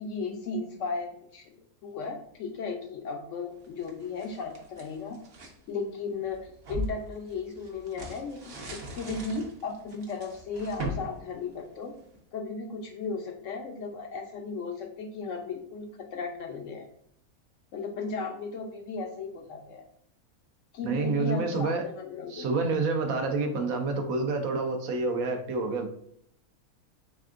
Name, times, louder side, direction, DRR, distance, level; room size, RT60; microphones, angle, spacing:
voice 1, 0.0-1.6 1.8-5.2 5.7-11.9 12.3-16.9 17.7-19.8 20.7-22.5, left 4 dB, 70° left, 3 dB, 0.8 m, -35 dB
sound 1, 3.6-5.6 6.1-12.2, equal, 50° right, 0.8 m, -40 dB
voice 2, 20.8-21.8 22.3-25.9, right 3 dB, 70° right, 4 dB, 1.1 m, -28 dB
4.2 x 3.5 x 2.4 m, 0.66 s
omnidirectional pair, 1.6 m